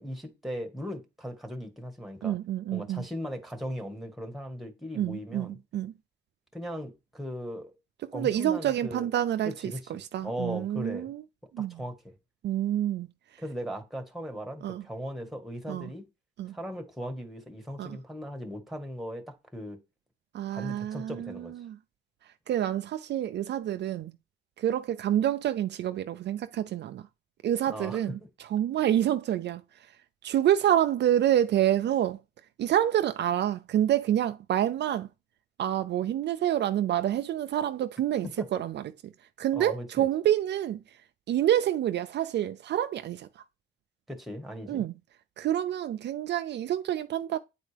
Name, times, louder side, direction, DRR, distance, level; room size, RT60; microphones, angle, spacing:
voice 1, 0.0-2.3 2.7-5.6 6.5-7.7 8.1-9.1 9.4-11.1 11.6-12.1 13.4-16.1 16.5-19.8 20.5-21.5 27.7-28.0 38.4-38.5 39.6-40.1 44.1-44.8, equal, ahead, 1.5 m, -38 dB
voice 2, 2.2-3.1 4.9-5.9 8.0-9.5 9.9-11.2 11.5-11.8 12.4-13.1 14.6-14.8 15.7-15.9 16.4-16.6 17.8-18.0 20.3-21.8 22.5-24.1 24.6-27.1 27.4-29.6 30.2-32.2 32.6-35.1 35.6-38.8 39.4-40.8 41.3-43.3 44.7-44.9 45.4-47.4, right 11 dB, 60° right, 0.4 m, -27 dB
9.2 x 4.3 x 3.4 m
cardioid pair, 90°, 20 cm